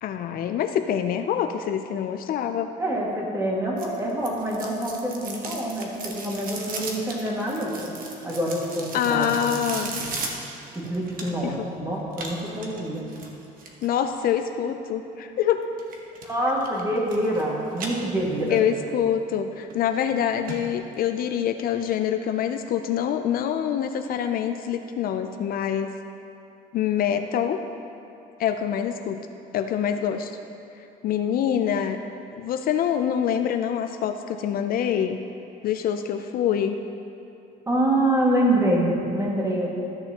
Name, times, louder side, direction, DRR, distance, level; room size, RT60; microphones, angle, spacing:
voice 1, 0.0-2.7 8.9-10.0 11.4-11.7 13.8-15.6 18.5-25.9 26.7-27.6 28.4-29.2 29.5-30.3 31.0-32.0 32.4-35.2 35.6-36.8, left 9 dB, 60° left, 7 dB, 0.4 m, -25 dB
voice 2, 2.8-7.9 8.2-10.1 10.8-13.1 16.3-18.6 37.7-39.7, right 1 dB, 15° right, -4 dB, 1.9 m, -26 dB
sound 1, 3.8-11.6 12.1-13.9 15.8-16.3 16.6-17.4 17.7-18.6 19.0-19.1 19.7-19.8 20.1-20.2 20.5-20.6 20.9-21.0, right 3 dB, 55° right, 1.2 m, -36 dB
13.5 x 6.7 x 2.9 m, 2.9 s
cardioid pair, 110°, 17 cm